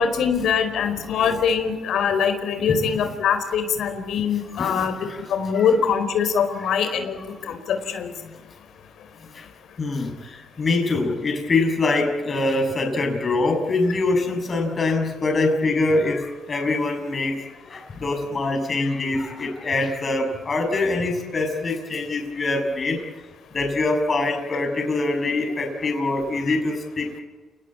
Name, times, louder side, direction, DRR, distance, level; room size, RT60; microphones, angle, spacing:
voice 1, 0.0-4.9 5.3-8.1 26.5-26.6, left 6 dB, 75° left, 8 dB, 4.5 m, -23 dB
voice 2, 0.9-1.4 2.6-2.9 4.2-5.7 6.5-7.1 7.4-7.5 8.2-8.3 9.3-9.5 9.8-23.0 23.5-27.2, left 2 dB, 35° left, 3 dB, 6.6 m, -24 dB
29.5 x 19.0 x 8.7 m, 1.3 s
cardioid pair, 90°, 0 cm